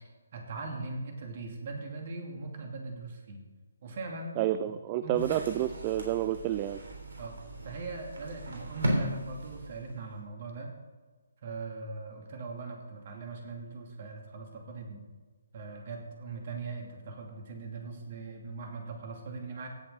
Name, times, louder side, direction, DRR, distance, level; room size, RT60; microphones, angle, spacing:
voice 1, 0.3-3.4 3.8-4.4 5.0-5.3 7.2-7.4 7.6-10.7 11.4-15.0 15.5-19.7, right 3 dB, 45° right, 2 dB, 2.5 m, -40 dB
voice 2, 4.4-6.8, right 12 dB, 25° right, 11 dB, 0.4 m, -29 dB
sound 1, 5.1-10.1, right 1 dB, 65° right, 3.2 m, -36 dB
16.5 x 7.1 x 3.8 m, 1.3 s
figure-of-eight pair, 140°, 0 cm